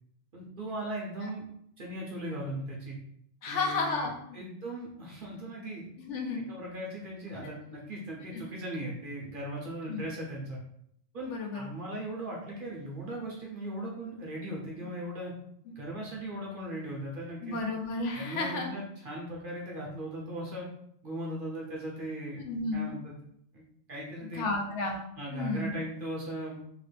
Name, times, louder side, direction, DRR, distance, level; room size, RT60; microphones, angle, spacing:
voice 1, 0.3-1.5 1.8-3.0 3.5-4.1 4.3-5.9 6.3-10.6 11.1-15.3 15.8-17.6 18.1-20.7 21.0-22.4 22.7-23.2 23.5-23.6 23.9-24.4 25.2-26.6, right 1 dB, 50° right, -3 dB, 0.7 m, -38 dB
voice 2, 3.4-4.4 6.0-6.5 7.3-7.5 8.3-8.4 9.9-10.0 11.3-11.7 14.8-14.9 15.7-15.8 17.4-18.7 22.4-23.0 24.3-25.0 25.3-25.8, left 3 dB, 70° left, 1 dB, 0.9 m, -33 dB
2.9 x 2.4 x 3.2 m, 0.70 s
omnidirectional pair, 1.3 m